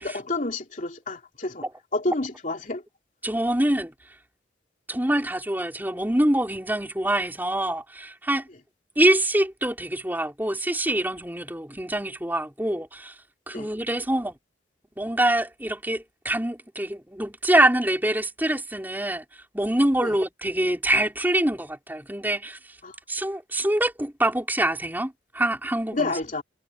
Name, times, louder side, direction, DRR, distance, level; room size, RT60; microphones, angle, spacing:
voice 1, 0.0-1.7 1.9-2.8 13.5-13.7 20.0-20.1 22.8-22.9 25.9-26.4, left 2 dB, 40° left, 3.0 m, -29 dB
voice 2, 3.2-3.9 4.9-8.5 9.0-13.1 13.5-14.3 15.0-19.2 19.5-22.6 23.1-26.1, right 1 dB, 10° right, 4.3 m, -25 dB
head